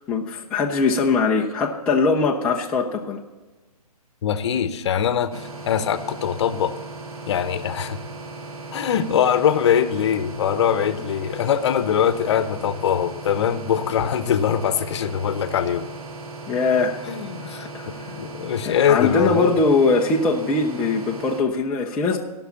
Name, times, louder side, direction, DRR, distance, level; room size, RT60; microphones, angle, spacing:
voice 1, 0.0-3.2 16.5-17.0 17.4-17.9 18.6-22.2, left 4 dB, 5° left, -2 dB, 0.4 m, -21 dB
voice 2, 4.2-6.7 7.3-8.0 8.7-15.9 17.1-19.5, left 8 dB, 45° left, 12 dB, 0.8 m, -22 dB
sound 1, 5.3-21.4, right 3 dB, 65° right, 1.6 m, -37 dB
16.0 x 6.1 x 6.9 m, 1.2 s
hypercardioid pair, 145°, 20 cm